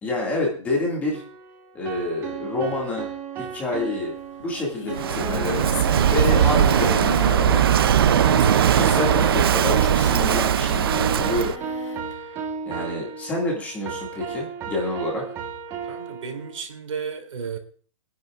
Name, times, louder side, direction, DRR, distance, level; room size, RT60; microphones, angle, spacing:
voice 1, 0.0-1.2 1.7-3.1 3.4-4.1 4.4-5.7 6.1-8.2 8.7-11.6 11.9-12.4 12.7-15.3, left 2 dB, 10° left, 2.0 m, -28 dB
sound 1, 1.1-16.6, right 5 dB, 15° right, 1.2 m, -34 dB
Singing, 4.1-4.2 4.4-12.1, left 3 dB, 70° left, 3.5 m, -35 dB
Walk footsteps / Wind / Waves surf, 4.9-11.6, right 9 dB, 45° right, 0.5 m, -19 dB
voice 2, 15.9-17.6, right 6 dB, 75° right, 2.9 m, -33 dB
23.5 x 10.5 x 2.4 m
hypercardioid pair, 175°, 16 cm